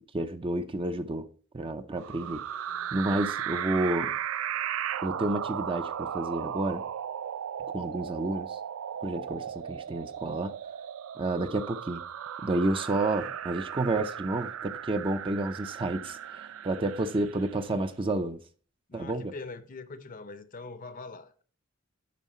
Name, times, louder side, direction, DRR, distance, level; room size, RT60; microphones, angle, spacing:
voice 1, 0.1-1.2 1.5-2.4 2.9-4.2 5.0-6.8 7.7-8.6 9.0-10.5 11.2-12.0 12.4-18.4 18.9-19.3, right 2 dB, 25° right, 0.5 m, -30 dB
sound 1, 2.0-17.6, right 9 dB, 90° right, 0.4 m, -36 dB
voice 2, 18.9-21.4, left 3 dB, 40° left, 0.6 m, -43 dB
9.3 x 5.6 x 4.2 m
head